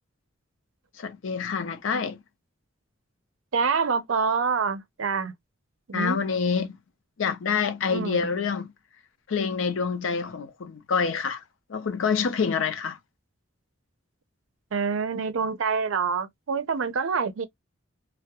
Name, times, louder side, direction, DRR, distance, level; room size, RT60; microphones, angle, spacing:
voice 1, 1.0-2.2 5.9-6.8 7.2-8.7 9.3-11.4 11.7-13.0, left 5 dB, 75° left, 0.5 m, -27 dB
voice 2, 3.5-5.3 5.9-6.2 7.9-8.2 14.7-17.4, right 5 dB, 80° right, 0.5 m, -26 dB
2.3 x 2.0 x 2.8 m
head